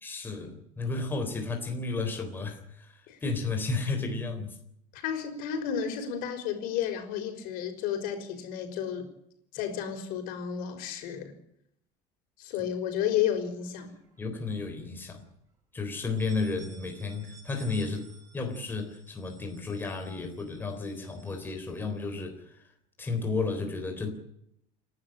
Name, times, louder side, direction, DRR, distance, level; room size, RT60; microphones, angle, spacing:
voice 1, 0.0-4.6 14.2-15.2 15.7-18.1 18.3-22.6 23.0-24.1, left 3 dB, 10° left, 4 dB, 3.7 m, -33 dB
voice 2, 4.9-9.1 9.5-11.3 12.4-13.9, left 9 dB, 60° left, 6 dB, 5.6 m, -32 dB
sound 1, 13.5-14.4 14.8-14.9 15.3-15.4 16.0-22.2, right 4 dB, 20° right, 6.3 m, -56 dB
29.0 x 12.0 x 8.9 m, 0.75 s
cardioid pair, 170°, 17 cm